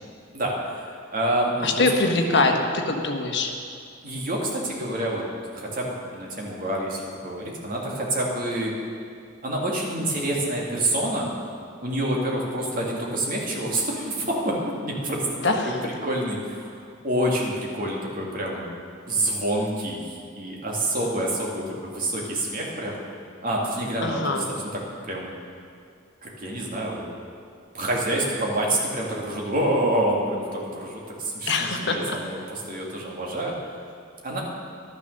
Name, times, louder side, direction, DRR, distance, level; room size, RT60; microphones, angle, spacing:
voice 1, 1.1-1.8 2.3-2.5 4.0-5.2 5.5-8.7 9.4-11.3 11.8-14.6 14.8-15.2 15.8-16.8 17.0-18.7 19.1-20.0 20.4-23.0 23.4-24.4 25.0-25.3 26.2-27.1 27.7-33.5 34.2-34.4, right 1 dB, 45° right, -2 dB, 2.3 m, -27 dB
voice 2, 1.6-3.5 15.4-15.8 24.0-24.5 31.5-32.2, left 3 dB, 60° left, 3 dB, 1.2 m, -23 dB
12.0 x 9.7 x 6.6 m, 2.3 s
head